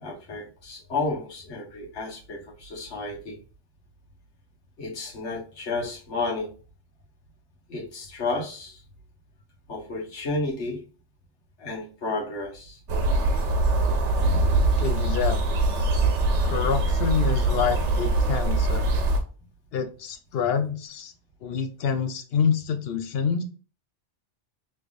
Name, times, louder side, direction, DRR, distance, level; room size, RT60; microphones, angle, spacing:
voice 1, 0.0-3.4 4.8-6.5 7.7-8.8 9.7-10.8 11.6-12.8, left 3 dB, 90° left, -2 dB, 1.5 m, -32 dB
sound 1, 12.9-19.2, right 2 dB, 85° right, 1.0 m, -23 dB
voice 2, 14.8-15.6 16.4-18.8 19.7-21.1 21.4-23.4, left 6 dB, 65° left, 8 dB, 0.8 m, -27 dB
3.4 x 3.2 x 2.4 m, 0.37 s
omnidirectional pair, 1.2 m